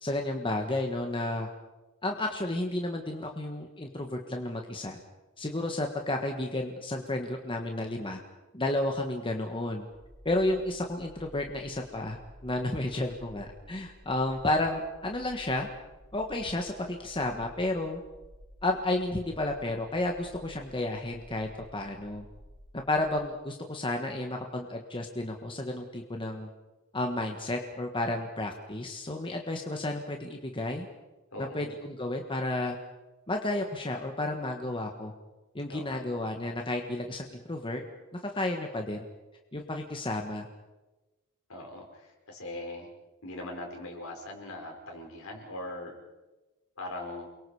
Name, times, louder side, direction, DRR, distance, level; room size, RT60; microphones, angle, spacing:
voice 1, 0.0-1.5 2.0-5.0 5.4-8.2 8.5-9.8 10.2-15.7 16.1-18.0 18.6-22.2 22.9-26.5 26.9-30.9 31.4-32.8 33.3-35.1 35.5-37.8 38.1-39.0 39.5-40.5, left 2 dB, 25° left, 3 dB, 1.6 m, -32 dB
sound 1, 9.9-23.2, equal, 10° right, 3.5 m, -53 dB
voice 2, 31.3-31.8 35.7-36.0 41.5-42.9 43.2-45.9 46.8-47.3, left 1 dB, 65° left, 1 dB, 5.3 m, -40 dB
29.5 x 22.5 x 5.0 m, 1.1 s
head